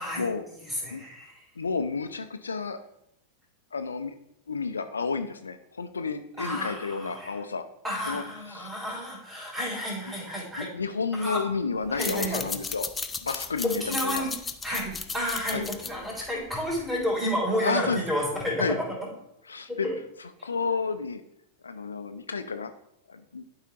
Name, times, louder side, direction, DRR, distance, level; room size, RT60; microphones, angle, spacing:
voice 1, 0.0-0.4 0.9-1.0 1.6-2.8 3.7-4.1 4.5-7.7 8.1-8.7 10.6-12.9 13.2-14.3 15.5-15.7 17.6-18.0 18.6-18.8 19.5-19.9 20.2-21.2 21.6-22.7 23.1-23.4, left 4 dB, 75° left, 9 dB, 0.4 m, -31 dB
voice 2, 0.6-1.4 6.4-7.4 7.8-10.7 11.1-11.4 11.9-12.4 13.6-14.3 14.6-18.6 19.7-20.0, equal, 10° right, -4 dB, 3.0 m, -31 dB
sound 1, 11.9-17.0, left 4 dB, 15° left, 0.4 m, -35 dB
11.5 x 4.9 x 2.9 m, 0.79 s
figure-of-eight pair, 90°, 0 cm